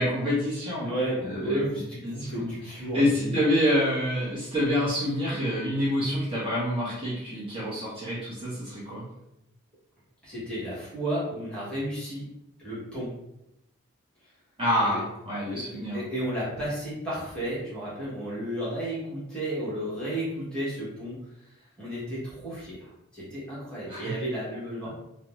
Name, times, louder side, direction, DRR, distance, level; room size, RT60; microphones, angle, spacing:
voice 1, 0.0-0.9 1.2-1.6 2.0-2.5 2.9-9.0 14.6-16.0 23.9-24.1, equal, 25° right, -9 dB, 0.7 m, -27 dB
voice 2, 0.8-3.3 10.2-12.3 12.6-13.1 14.8-15.0 15.5-21.2 21.5-24.9, right 1 dB, 5° left, -9 dB, 1.0 m, -33 dB
2.5 x 2.1 x 2.9 m, 0.85 s
head